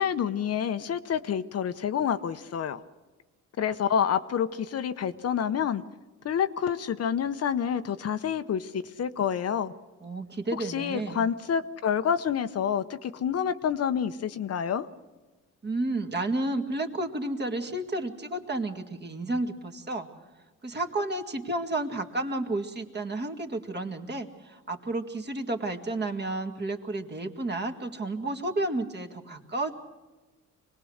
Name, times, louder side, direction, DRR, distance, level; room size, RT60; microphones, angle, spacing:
voice 1, 0.0-2.8 3.6-5.8 6.2-9.7 10.5-14.9, left 8 dB, 55° left, 10 dB, 0.9 m, -28 dB
voice 2, 10.0-11.3 15.6-20.1 20.6-29.7, right 2 dB, 35° right, 4 dB, 2.2 m, -31 dB
25.0 x 19.0 x 6.5 m, 1.2 s
cardioid pair, 90°, 30 cm